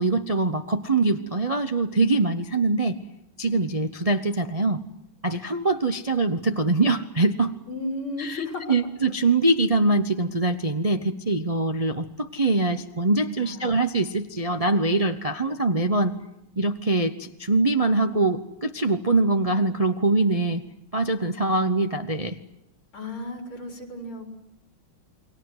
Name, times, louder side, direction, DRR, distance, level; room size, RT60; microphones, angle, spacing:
voice 1, 0.0-3.0 3.4-4.8 5.2-7.5 8.2-16.2 16.6-20.6 20.9-22.4, right 2 dB, 35° right, 8 dB, 0.6 m, -23 dB
voice 2, 7.7-8.8 13.4-13.7 22.9-24.3, left 2 dB, 90° left, 4 dB, 5.3 m, -34 dB
29.0 x 22.0 x 8.0 m, 0.86 s
omnidirectional pair, 2.3 m